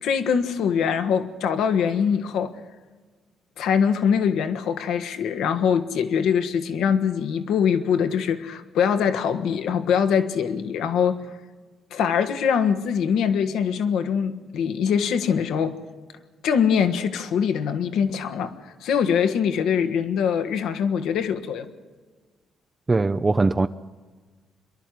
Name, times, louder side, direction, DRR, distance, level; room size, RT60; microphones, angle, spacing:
voice 1, 0.0-2.6 3.6-11.2 11.9-15.8 16.4-21.7, left 7 dB, 80° left, 1.5 m, -23 dB
voice 2, 22.9-23.7, right 3 dB, 25° right, 0.6 m, -20 dB
26.5 x 11.5 x 9.3 m
cardioid pair, 90°, 0 cm